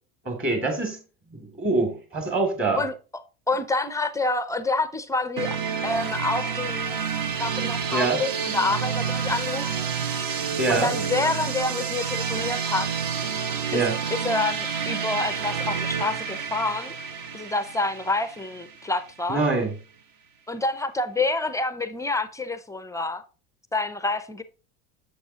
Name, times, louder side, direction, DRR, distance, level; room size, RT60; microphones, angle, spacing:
voice 1, 0.2-1.0 1.3-2.8 7.9-8.2 10.6-10.9 13.7-14.0 19.3-19.7, right 3 dB, 25° right, 2.4 m, -24 dB
voice 2, 3.5-7.0 7.4-9.9 10.7-12.9 13.7-13.8 14.1-16.9 17.3-19.4 20.5-23.2 23.7-24.4, left 3 dB, 10° left, 0.4 m, -27 dB
sound 1, 5.4-19.1, right 6 dB, 45° right, 1.1 m, -29 dB
7.8 x 6.9 x 2.8 m
hypercardioid pair, 95°, 46 cm